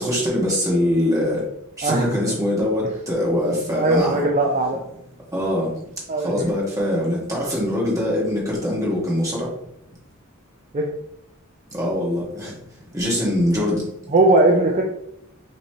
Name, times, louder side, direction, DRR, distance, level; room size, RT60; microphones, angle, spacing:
voice 1, 0.0-1.4 1.8-4.2 5.3-5.7 6.2-9.5 11.7-12.5 12.9-13.9, left 1 dB, 15° right, -4 dB, 1.5 m, -23 dB
voice 2, 3.7-4.8 6.1-6.5 10.7-10.9 14.1-14.8, right 2 dB, 30° right, 0 dB, 0.5 m, -19 dB
5.4 x 3.1 x 2.8 m, 0.78 s
head